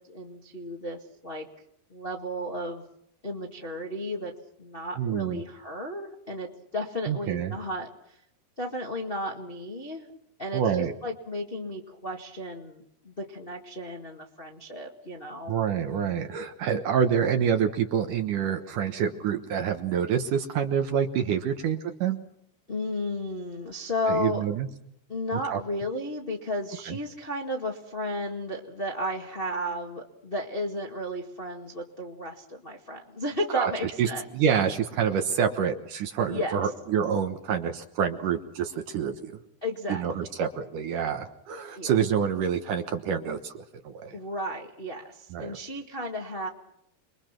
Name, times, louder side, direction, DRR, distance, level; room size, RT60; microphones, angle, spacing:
voice 1, 0.1-1.5 1.9-2.8 3.2-4.3 4.6-8.2 8.6-10.0 10.4-15.5 22.7-24.4 25.1-34.2 34.6-34.7 36.3-36.6 39.6-40.2 41.7-41.9 44.1-46.5, left 1 dB, 30° left, 0 dB, 0.9 m, -33 dB
voice 2, 5.0-5.4 7.1-7.5 10.5-10.9 15.5-22.2 24.1-24.7 25.3-25.6 26.9-27.0 33.5-33.7 34.0-39.4 39.9-44.2 45.3-45.6, right 8 dB, 65° right, 6 dB, 2.4 m, -27 dB
28.5 x 22.5 x 6.0 m, 0.74 s
omnidirectional pair, 4.7 m